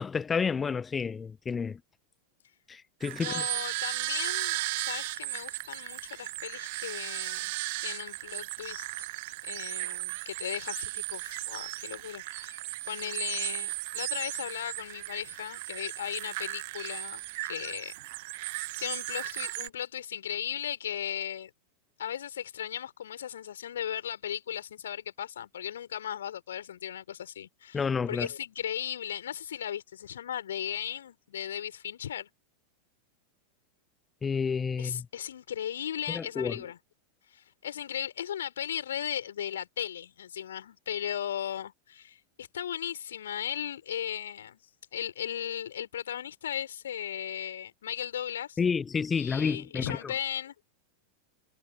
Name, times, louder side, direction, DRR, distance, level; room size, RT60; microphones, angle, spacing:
voice 1, 0.0-1.8 2.7-3.4 27.7-28.3 34.2-35.1 36.1-36.6 48.6-50.1, left 5 dB, 15° left, 1.0 m, -30 dB
sound 1, 3.0-19.7, right 22 dB, 50° right, 1.1 m, -36 dB
voice 2, 3.2-7.5 7.8-9.1 9.4-17.9 18.8-21.5 22.0-27.8 28.1-32.3 34.8-36.8 37.3-44.6 44.9-48.6 49.1-50.6, left 10 dB, 65° left, 5.3 m, -37 dB
figure-of-eight pair, 90°, 0 cm